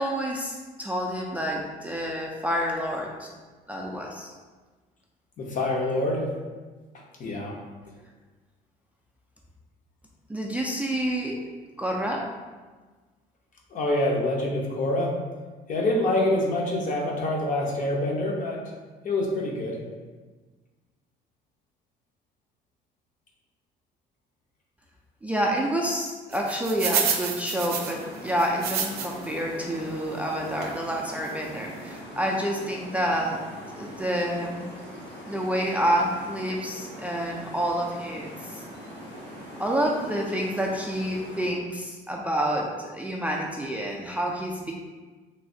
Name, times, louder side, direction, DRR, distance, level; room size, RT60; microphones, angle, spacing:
voice 1, 0.0-3.3 3.7-4.3 10.3-11.4 11.8-12.3 25.2-33.4 33.8-34.7 35.3-38.6 39.6-44.7, equal, 10° right, -2 dB, 0.3 m, -28 dB
voice 2, 5.4-6.3 7.2-7.6 13.7-15.1 15.7-18.6 19.0-19.8, left 1 dB, 50° left, -1 dB, 0.7 m, -26 dB
sound 1, 26.3-29.3 29.8-29.9 30.6-30.8 31.3-31.4 31.6-31.7, right 7 dB, 70° right, 0.5 m, -29 dB
sound 2, 27.5-41.5, equal, 75° left, 1.3 m, -42 dB
3.2 x 2.7 x 2.6 m, 1.3 s
cardioid pair, 110°, 17 cm